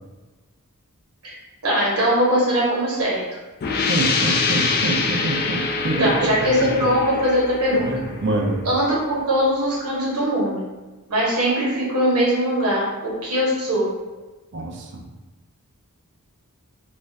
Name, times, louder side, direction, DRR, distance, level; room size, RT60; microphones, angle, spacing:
voice 1, 1.6-3.2 6.0-7.9 8.6-10.6 11.1-13.9, equal, 85° right, -5 dB, 1.0 m, -21 dB
sound 1, 3.6-9.1, left 4 dB, 45° left, 0.3 m, -25 dB
voice 2, 3.9-6.3 7.7-8.6 14.5-15.0, right 2 dB, 55° right, 1 dB, 0.5 m, -25 dB
2.4 x 2.4 x 3.3 m, 1.2 s
head